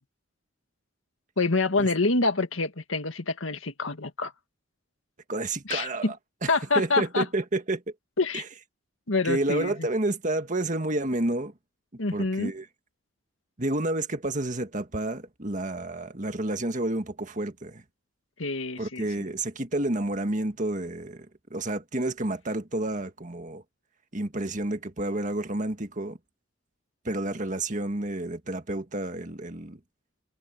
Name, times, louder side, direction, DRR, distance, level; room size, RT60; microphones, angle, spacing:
voice 1, 1.4-4.3 5.7-6.1 6.5-7.2 8.2-8.4 9.1-9.9 12.0-12.5 18.4-19.0, left 3 dB, 75° left, 1.8 m, -26 dB
voice 2, 5.3-6.2 6.4-7.8 8.3-8.4 9.2-11.5 12.1-12.7 13.6-17.8 18.8-23.6 24.1-26.2 27.0-29.8, right 2 dB, 40° right, 1.8 m, -30 dB
head